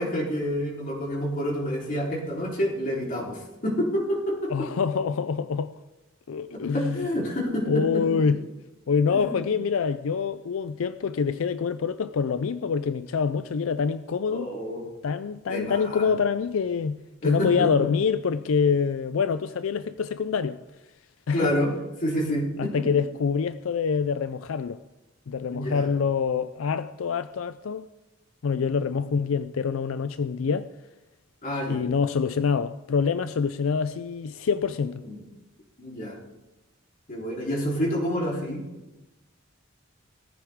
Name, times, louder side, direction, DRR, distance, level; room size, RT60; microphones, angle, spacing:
voice 1, 0.0-4.7 6.5-8.2 9.1-9.4 14.3-14.8 15.5-16.1 17.2-17.9 21.3-21.7 22.0-22.8 25.5-25.9 28.9-29.1 31.4-31.8 35.0-35.2 35.8-36.2 37.1-38.6, equal, 40° left, 3.7 m, -28 dB
voice 2, 4.5-5.7 6.3-7.0 7.7-8.4 8.9-14.5 15.0-20.6 21.3-21.5 22.6-24.8 25.3-27.9 28.4-30.7 31.7-35.0, left 6 dB, 85° left, 0.4 m, -26 dB
18.5 x 14.5 x 3.6 m
head